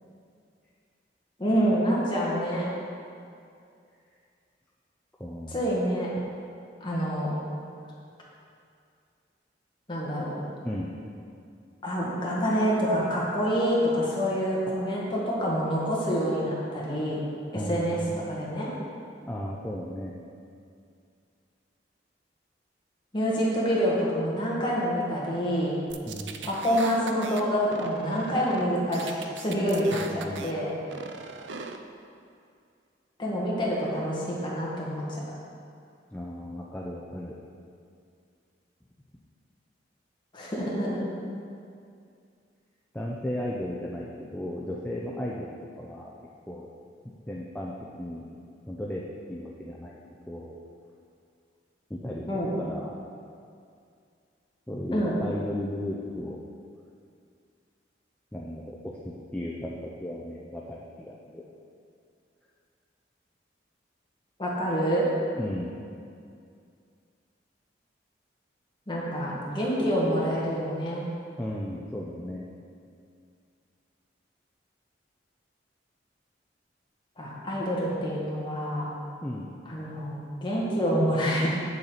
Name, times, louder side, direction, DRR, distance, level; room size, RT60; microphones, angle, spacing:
voice 1, 1.4-2.7 5.5-6.1 6.8-7.4 9.9-10.4 11.8-17.2 17.7-18.0 18.4-18.7 23.1-25.7 26.4-30.7 33.2-35.2 40.3-41.0 52.2-52.5 54.9-55.1 64.4-65.0 68.9-71.0 77.2-78.8 79.7-81.5, equal, 25° left, -6 dB, 1.6 m, -27 dB
voice 2, 5.2-5.6 10.6-10.9 17.5-18.2 19.3-20.1 26.1-26.5 29.9-30.5 36.1-37.3 42.9-46.1 46.5-46.7 47.3-48.4 48.7-49.0 49.3-50.0 50.3-50.6 51.9-53.0 54.7-56.4 58.3-61.4 65.4-65.7 71.4-72.4 79.2-79.5, left 1 dB, 10° left, -4 dB, 0.5 m, -35 dB
sound 1, 25.9-27.4 27.7-28.7 28.9-30.5 30.9-31.8, right 5 dB, 85° right, 0.5 m, -40 dB
8.1 x 6.9 x 4.0 m, 2.4 s
head